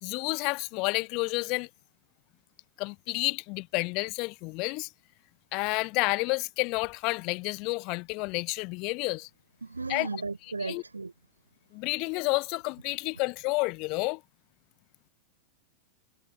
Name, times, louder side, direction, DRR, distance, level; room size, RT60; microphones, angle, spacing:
voice 1, 0.0-1.7 2.8-4.9 5.5-9.3 9.9-10.1 10.6-10.8 11.7-14.2, left 28 dB, 45° left, 0.7 m, -30 dB
voice 2, 9.6-11.1, right 3 dB, 80° right, 6.1 m, -35 dB
figure-of-eight pair, 90°, 0 cm